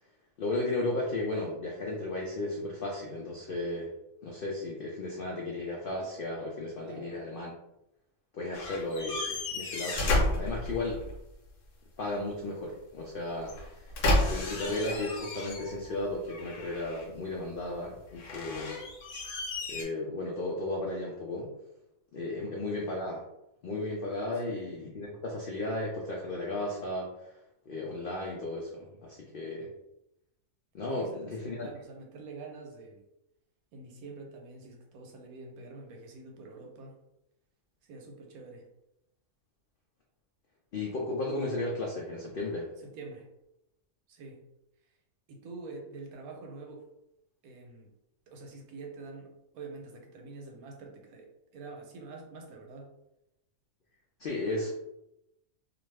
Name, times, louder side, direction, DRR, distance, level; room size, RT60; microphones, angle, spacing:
voice 1, 0.4-3.9 4.2-7.5 8.3-11.0 12.0-14.0 14.3-18.8 19.7-21.5 22.1-23.2 23.6-27.3 27.7-29.7 30.7-31.7 40.7-42.7 54.2-54.7, left 2 dB, 70° left, -1 dB, 0.5 m, -34 dB
voice 2, 6.8-7.2 22.4-22.5 24.5-24.7 31.0-33.0 33.7-36.9 37.8-38.7 42.8-43.3 44.1-44.4 45.3-46.9 47.4-47.9 48.3-52.9, right 3 dB, 90° right, 2 dB, 1.1 m, -46 dB
sound 1, 8.5-11.2 13.4-15.9 16.3-17.2 18.1-19.8, left 1 dB, 90° left, 1.2 m, -32 dB
2.5 x 2.4 x 3.2 m, 0.86 s
omnidirectional pair, 1.5 m